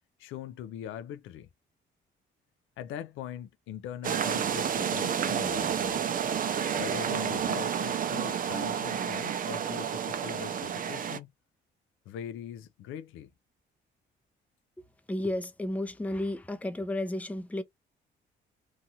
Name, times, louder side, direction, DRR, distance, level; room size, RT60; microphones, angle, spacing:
voice 1, 0.2-1.5 2.8-6.0 6.8-11.3 12.1-13.3, left 10 dB, 85° left, 0.4 m, -41 dB
sound 1, 4.0-11.2, right 8 dB, 45° right, 0.5 m, -30 dB
voice 2, 15.1-17.6, left 1 dB, 5° left, 0.5 m, -32 dB
2.8 x 2.4 x 2.7 m
cardioid pair, 90°, 20 cm